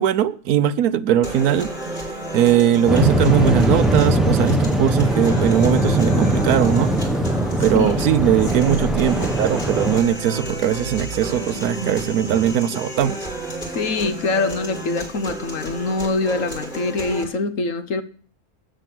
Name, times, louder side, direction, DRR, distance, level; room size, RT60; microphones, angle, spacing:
voice 1, 0.0-2.1 2.3-6.9 7.5-13.2, right 10 dB, 75° right, 1.2 m, -20 dB
sound 1, 1.2-17.2, right 1 dB, 40° left, 5.7 m, -32 dB
Waves surf, 2.9-10.0, right 1 dB, ahead, 0.7 m, -20 dB
sound 2, 7.2-12.4, right 5 dB, 55° right, 1.4 m, -34 dB
voice 2, 7.7-8.4 13.6-18.0, left 3 dB, 60° left, 1.3 m, -24 dB
13.0 x 8.7 x 6.0 m
omnidirectional pair, 1.6 m